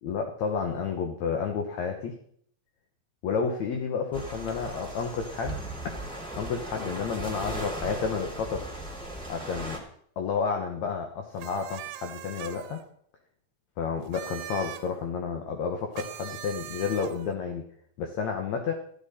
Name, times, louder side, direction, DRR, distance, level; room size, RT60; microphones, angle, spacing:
voice 1, 0.0-2.2 3.2-5.9 6.4-8.7 9.3-9.8 10.2-12.8 13.8-17.7 18.0-18.7, left 5 dB, 65° left, 4 dB, 2.1 m, -31 dB
sound 1, 4.1-9.8, right 1 dB, ahead, 2.3 m, -37 dB
sound 2, 11.4-12.8 14.0-14.9 15.9-17.3, right 12 dB, 80° right, 2.6 m, -41 dB
13.5 x 12.5 x 4.3 m, 0.64 s
omnidirectional pair, 4.0 m